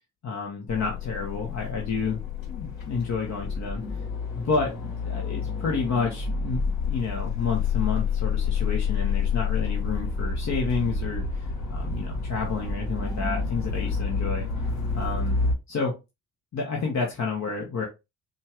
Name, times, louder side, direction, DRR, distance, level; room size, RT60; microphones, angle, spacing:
voice 1, 0.2-4.0 4.3-6.6 6.9-14.4 14.9-15.4 15.7-15.9 16.5-17.8, left 5 dB, 50° left, 0 dB, 1.4 m, -30 dB
sound 1, 0.7-15.5, left 5 dB, 70° left, 2.2 m, -29 dB
5.3 x 2.4 x 3.0 m, 0.24 s
hypercardioid pair, 50°, 35 cm